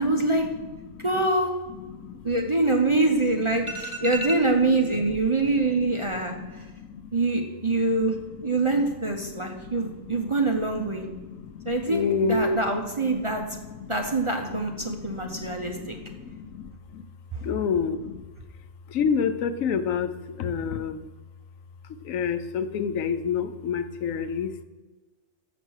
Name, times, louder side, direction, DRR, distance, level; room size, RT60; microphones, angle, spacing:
voice 1, 0.0-0.5 1.0-1.5 2.2-6.4 7.1-8.1 8.4-11.1 11.7-13.4 13.9-15.9, right 2 dB, 30° right, 2 dB, 0.7 m, -24 dB
voice 2, 0.6-1.0 1.8-2.2 3.5-4.2 5.1-7.1 7.8-10.6 10.9-12.6 13.0-14.2 14.5-17.0 17.4-18.2 18.9-21.1 22.0-24.6, left 6 dB, 80° left, 11 dB, 1.0 m, -31 dB
7.3 x 5.9 x 6.3 m, 1.2 s
omnidirectional pair, 1.4 m